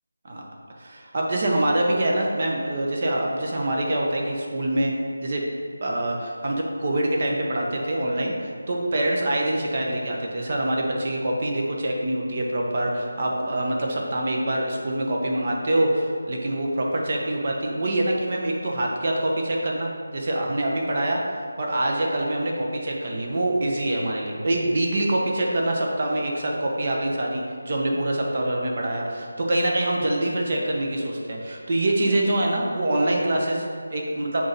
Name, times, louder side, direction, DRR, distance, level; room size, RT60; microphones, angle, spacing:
voice 1, 0.8-5.0 5.2-5.4 5.8-21.2 21.6-34.4, right 1 dB, 45° right, -1 dB, 1.1 m, -25 dB
6.7 x 4.0 x 5.3 m, 2.2 s
figure-of-eight pair, 165°, 0 cm